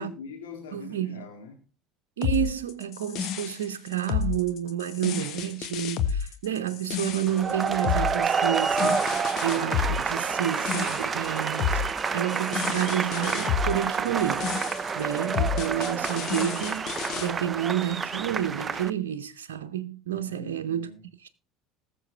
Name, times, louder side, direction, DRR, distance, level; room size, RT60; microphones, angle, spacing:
voice 1, 0.0-1.7 15.3-15.5 20.2-21.0, left 5 dB, 75° left, 2.1 m, -43 dB
voice 2, 0.7-1.2 2.2-11.8 12.1-14.5 15.0-20.9 21.2-21.3, right 10 dB, 75° right, 0.7 m, -30 dB
sound 1, 2.2-17.3, left 8 dB, 50° left, 1.4 m, -31 dB
sound 2, 7.3-18.9, right 5 dB, 30° right, 0.6 m, -29 dB
19.5 x 6.9 x 3.3 m
figure-of-eight pair, 65°, 0 cm